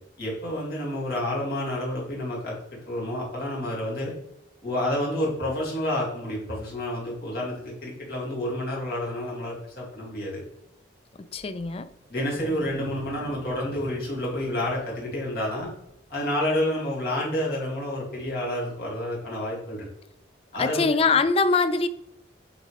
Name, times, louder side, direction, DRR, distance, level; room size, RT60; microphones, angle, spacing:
voice 1, 0.2-4.1 4.6-10.4 12.1-15.7 16.1-19.9 20.5-21.1, left 1 dB, 50° left, 2.3 m, -29 dB
voice 2, 11.2-11.9 20.6-21.9, left 4 dB, 30° left, 0.3 m, -23 dB
Wild animals, 11.4-16.4, right 1 dB, 45° right, 0.6 m, -43 dB
8.2 x 3.7 x 3.3 m
head